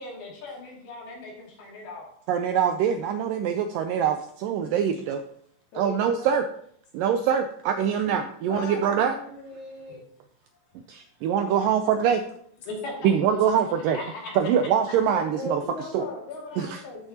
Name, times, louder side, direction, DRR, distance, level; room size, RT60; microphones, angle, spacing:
voice 1, 0.0-2.1 9.9-10.0 10.7-10.8 12.7-14.4 14.9-15.0, left 2 dB, 75° left, -3 dB, 4.3 m, -39 dB
voice 2, 2.3-5.2 5.8-6.5 6.9-9.1 10.9-12.2 13.0-14.0 14.4-15.6 15.9-16.1 16.6-16.8, right 8 dB, 80° right, 7 dB, 2.0 m, -24 dB
voice 3, 5.7-6.3 8.5-10.0 15.1-17.1, left 3 dB, 55° left, -2 dB, 3.2 m, -38 dB
12.5 x 7.0 x 2.8 m, 0.64 s
omnidirectional pair, 4.4 m